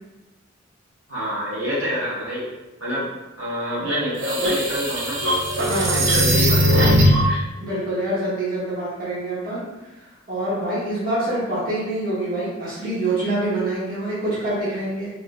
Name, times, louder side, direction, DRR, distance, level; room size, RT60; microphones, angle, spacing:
voice 1, 1.1-2.4 2.8-3.1 3.4-5.2 5.5-6.9, equal, 90° right, -7 dB, 1.1 m, -27 dB
sound 1, 3.9-7.4, equal, 65° right, 0.5 m, -19 dB
voice 2, 5.6-6.7 7.6-15.1, right 1 dB, 45° right, -10 dB, 0.9 m, -26 dB
3.0 x 2.4 x 2.3 m, 1.1 s
head